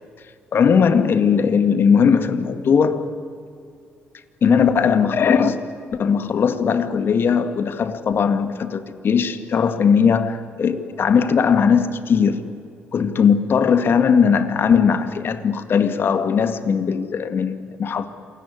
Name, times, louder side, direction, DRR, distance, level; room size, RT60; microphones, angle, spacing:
voice 1, 0.5-3.1 4.4-5.6 6.0-12.4 12.9-18.1, left 6 dB, 55° left, 10 dB, 2.0 m, -18 dB
27.5 x 18.0 x 10.0 m, 2.4 s
hypercardioid pair, 55°, 5 cm